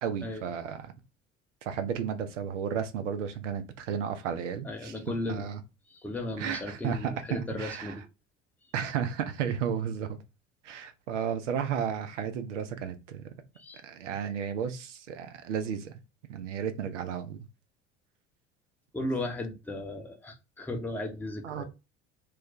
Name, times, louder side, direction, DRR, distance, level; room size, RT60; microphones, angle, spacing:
voice 1, 0.0-0.9 1.6-5.0 5.3-5.6 6.4-7.9 8.7-10.2 10.6-13.2 13.8-16.0 16.3-17.5 21.4-21.6, right 8 dB, 75° right, 0.6 m, -33 dB
voice 2, 4.6-5.5 5.9-8.0 13.6-13.8 18.9-21.6, left 1 dB, 5° left, 0.7 m, -35 dB
2.4 x 2.1 x 3.8 m
figure-of-eight pair, 60°, 37 cm